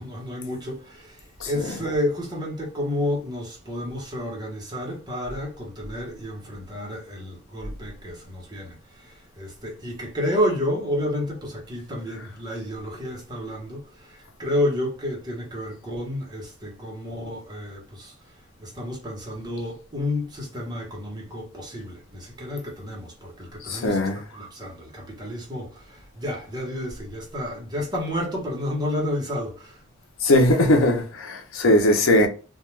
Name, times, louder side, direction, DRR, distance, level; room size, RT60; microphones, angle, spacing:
voice 1, 0.0-18.3 18.6-29.8, left 1 dB, 20° right, 0.9 m, -30 dB
voice 2, 1.4-1.8 23.6-24.3 30.2-32.3, left 1 dB, 85° left, 0.6 m, -20 dB
2.2 x 2.2 x 3.1 m
head